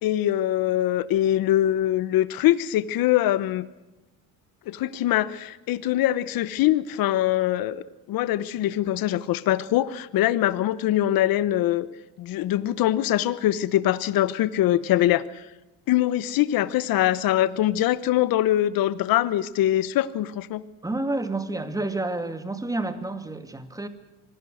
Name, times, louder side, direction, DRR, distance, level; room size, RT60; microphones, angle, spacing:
voice 1, 0.0-3.6 4.7-11.9 12.2-15.5 15.9-20.6, left 13 dB, 70° left, 15 dB, 1.1 m, -23 dB
voice 2, 20.8-23.9, right 2 dB, 10° right, 9 dB, 2.4 m, -29 dB
25.5 x 18.5 x 6.4 m, 1.0 s
cardioid pair, 115°, 36 cm